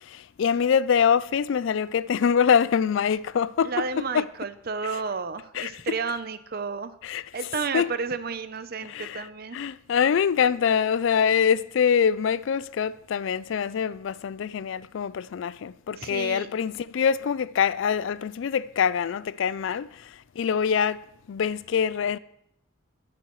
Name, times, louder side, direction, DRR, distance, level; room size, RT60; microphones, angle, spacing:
voice 1, 0.4-3.9 4.1-4.3 5.5-5.8 7.0-7.2 7.7-7.9 8.9-9.3 9.5-19.9 20.4-21.0 21.3-22.2, left 7 dB, 65° left, 0.3 m, -24 dB
voice 2, 3.6-7.0 7.3-9.6 16.0-16.5, right 5 dB, 45° right, 0.6 m, -32 dB
19.0 x 8.5 x 3.1 m
head